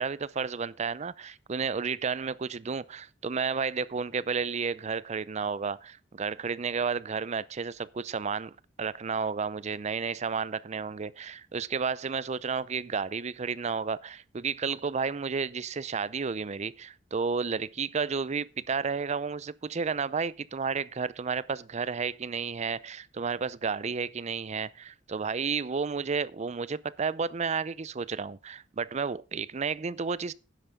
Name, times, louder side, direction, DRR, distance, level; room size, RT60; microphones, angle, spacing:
voice 1, 0.0-30.3, right 5 dB, 35° right, 0.5 m, -32 dB
12.0 x 10.0 x 3.7 m
head